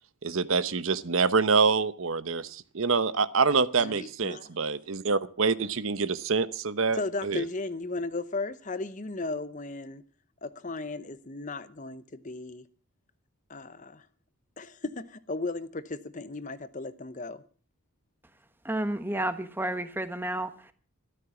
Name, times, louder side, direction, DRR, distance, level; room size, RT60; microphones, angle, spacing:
voice 1, 0.2-7.4, right 4 dB, 65° right, 0.8 m, -26 dB
voice 2, 3.8-4.5 6.9-10.0 10.4-12.6 13.5-14.0 14.6-17.4, left 3 dB, 35° left, 0.8 m, -35 dB
voice 3, 18.6-20.7, right 1 dB, 10° right, 1.1 m, -31 dB
13.0 x 13.0 x 7.0 m
head